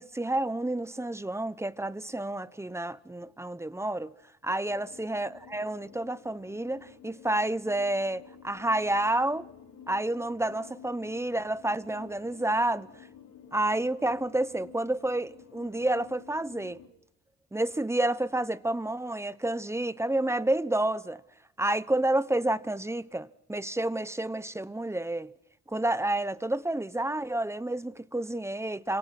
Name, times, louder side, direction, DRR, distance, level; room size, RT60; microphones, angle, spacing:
voice 1, 0.0-4.1 4.4-9.5 9.9-12.9 13.5-16.8 17.5-21.2 21.6-25.3 25.7-29.0, right 1 dB, 10° right, 1.0 m, -29 dB
sound 1, 4.7-16.9, left 7 dB, 90° left, 6.1 m, -52 dB
29.0 x 26.0 x 6.0 m
cardioid pair, 90°, 30 cm